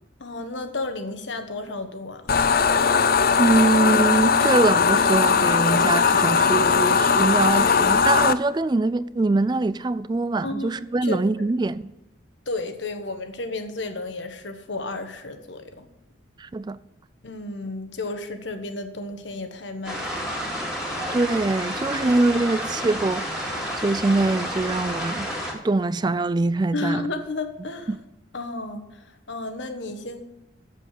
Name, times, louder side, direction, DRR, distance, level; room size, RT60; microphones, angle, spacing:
voice 1, 0.2-2.3 10.4-11.2 12.5-15.9 17.2-20.5 26.7-28.0 28.3-30.2, left 2 dB, 75° left, 1.3 m, -32 dB
sound 1, 2.3-8.3, left 5 dB, 50° left, 0.5 m, -19 dB
voice 2, 3.4-11.9 16.4-16.8 21.1-27.0 27.9-28.0, right 2 dB, 25° right, 0.3 m, -23 dB
sound 2, 19.8-25.5, equal, 5° right, 2.5 m, -30 dB
7.7 x 7.6 x 8.3 m
head